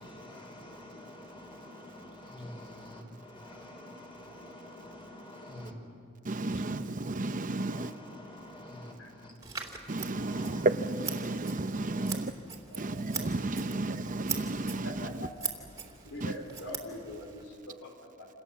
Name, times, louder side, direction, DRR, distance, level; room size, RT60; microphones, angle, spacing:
voice 1, 0.0-5.8 6.4-6.9 7.3-9.4 9.9-10.7 11.2-12.3 13.8-14.0 14.7-14.9 16.2-16.4, left 1 dB, 25° left, 1 dB, 5.1 m, -48 dB
voice 2, 6.2-7.9 9.9-12.3 12.8-15.3 16.2-16.3, right 2 dB, 40° right, 10 dB, 0.8 m, -32 dB
Scissors, 9.4-17.4, right 6 dB, 20° right, 2.6 m, -42 dB
voice 3, 14.8-15.5 16.0-18.3, left 1 dB, 80° left, 3 dB, 4.6 m, -43 dB
28.5 x 27.5 x 7.4 m, 2.3 s
head